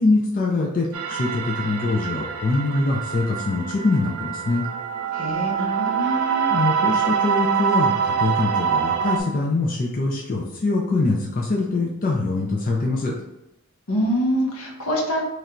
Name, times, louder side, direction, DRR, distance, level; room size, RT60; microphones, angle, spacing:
voice 1, 0.0-4.6 6.5-13.2, left 2 dB, 40° left, -1 dB, 0.5 m, -23 dB
sound 1, 0.9-9.2, right 7 dB, 70° right, 0.5 m, -25 dB
voice 2, 5.1-6.5 13.9-15.2, equal, 75° left, -1 dB, 1.0 m, -25 dB
3.2 x 2.5 x 4.3 m, 0.92 s
head